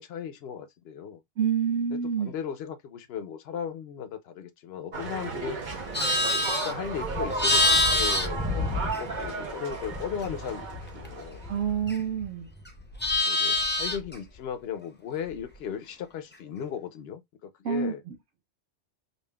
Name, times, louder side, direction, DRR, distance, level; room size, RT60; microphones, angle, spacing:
voice 1, 0.0-1.2 1.9-5.6 6.6-11.5 13.3-18.0, left 8 dB, 65° left, 0.8 m, -37 dB
voice 2, 1.4-2.3 11.5-12.5 17.6-18.2, right 7 dB, 85° right, 1.0 m, -28 dB
sound 1, 4.9-11.8, right 4 dB, 45° right, 0.9 m, -35 dB
Livestock farm animals working animals, 5.7-9.4 9.7-12.2 12.6-14.1, left 2 dB, 15° left, 0.4 m, -27 dB
5.4 x 2.4 x 2.2 m
omnidirectional pair, 1.2 m